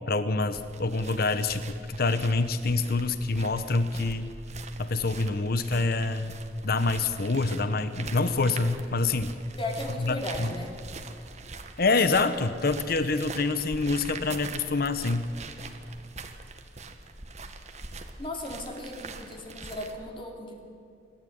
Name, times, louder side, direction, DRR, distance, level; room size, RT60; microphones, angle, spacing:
voice 1, 0.1-4.3 4.8-6.3 6.6-9.3 10.0-10.5 11.8-15.3, left 3 dB, 60° left, 11 dB, 1.0 m, -26 dB
sound 1, 0.5-19.9, right 3 dB, 40° right, 1.7 m, -43 dB
voice 2, 9.5-10.8 18.2-20.6, left 1 dB, 30° left, 1 dB, 3.0 m, -36 dB
29.0 x 12.5 x 9.4 m, 2.4 s
head